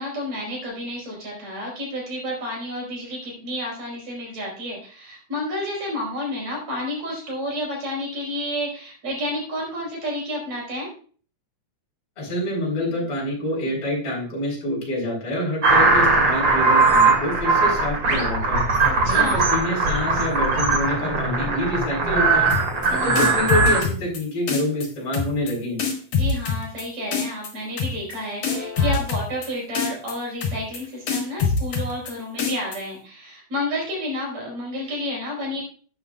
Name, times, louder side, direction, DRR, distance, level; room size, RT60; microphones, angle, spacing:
voice 1, 0.0-10.9 18.8-19.5 22.9-23.5 26.1-35.6, left 1 dB, 60° right, -2 dB, 6.0 m, -30 dB
voice 2, 12.2-18.6 19.1-22.5 22.9-25.8, left 1 dB, 45° left, -3 dB, 4.9 m, -27 dB
sound 1, 15.6-23.8, right 3 dB, 40° right, 2.8 m, -19 dB
sound 2, 22.5-22.9 23.2-24.2 24.5-24.9 25.1-25.5 25.8-26.8 27.1-27.5 27.8-28.1 28.4-29.5 29.7-30.1 30.4-30.8 31.1-32.1 32.4-32.8, left 5 dB, 75° left, 3.9 m, -24 dB
12.5 x 9.4 x 2.4 m, 0.42 s
omnidirectional pair, 3.5 m